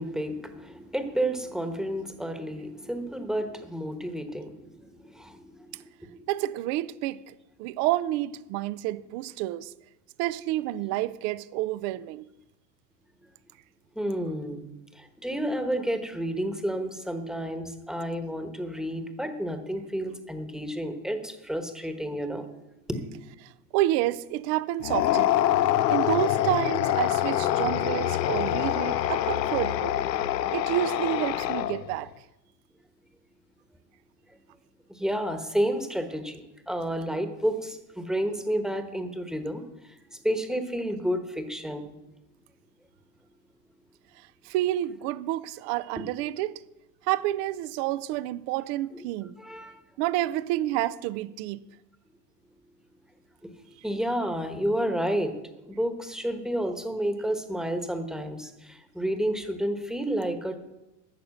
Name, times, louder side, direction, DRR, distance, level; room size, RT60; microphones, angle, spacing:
voice 1, 0.0-6.2 13.9-14.7 14.9-22.5 22.9-23.2 34.3-34.4 34.9-41.9 46.0-46.1 49.4-49.8 53.4-53.5 53.8-55.4 55.6-60.6, equal, ahead, 1.2 m, -31 dB
voice 2, 6.3-9.7 10.2-12.2 23.4-25.4 25.9-29.9 30.5-32.1 44.4-46.6 47.0-49.4 50.0-51.6, right 15 dB, 35° right, 0.4 m, -29 dB
sound 1, 24.8-32.0, left 12 dB, 80° left, 0.8 m, -25 dB
14.5 x 6.7 x 6.5 m
hypercardioid pair, 110°, 50 cm